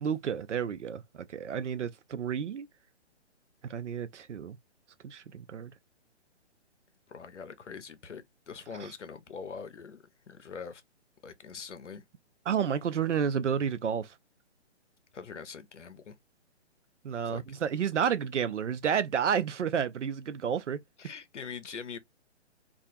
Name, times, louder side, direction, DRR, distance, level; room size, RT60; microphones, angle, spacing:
voice 1, 0.0-2.7 3.6-4.6 5.0-5.7 12.5-14.1 17.0-20.8, right 7 dB, 85° right, 0.5 m, -31 dB
voice 2, 7.1-10.8 11.2-12.0 15.1-16.2 17.2-17.4 21.0-22.0, left 6 dB, 90° left, 0.6 m, -43 dB
2.4 x 2.3 x 2.6 m
figure-of-eight pair, 135°, 35 cm